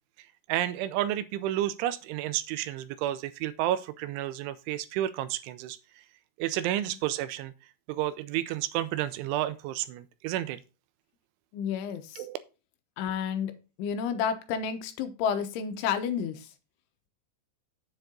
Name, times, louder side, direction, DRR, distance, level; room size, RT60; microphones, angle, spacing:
voice 1, 0.5-5.8 6.4-7.5 7.9-10.6 12.2-12.4, right 13 dB, 80° right, 2.8 m, -31 dB
voice 2, 11.5-12.2 13.0-13.5 13.8-16.5, left 7 dB, 75° left, 3.3 m, -31 dB
7.9 x 7.1 x 3.7 m
omnidirectional pair, 5.9 m